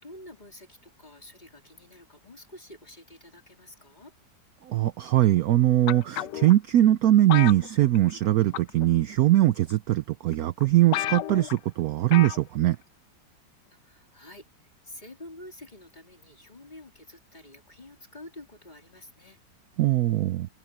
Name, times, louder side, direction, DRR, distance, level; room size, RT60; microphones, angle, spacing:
voice 1, 0.0-4.1 13.8-19.4, left 1 dB, 25° left, 4.0 m, -48 dB
voice 2, 4.7-12.8 19.8-20.5, right 14 dB, 70° right, 0.9 m, -21 dB
sound 1, 5.9-6.5 7.3-8.3 8.5-8.8 9.7-9.8 10.3-10.4 10.6-10.7 10.9-11.6 12.1-12.4 12.7-12.8, left 13 dB, 80° left, 1.2 m, -31 dB
omnidirectional pair, 1.9 m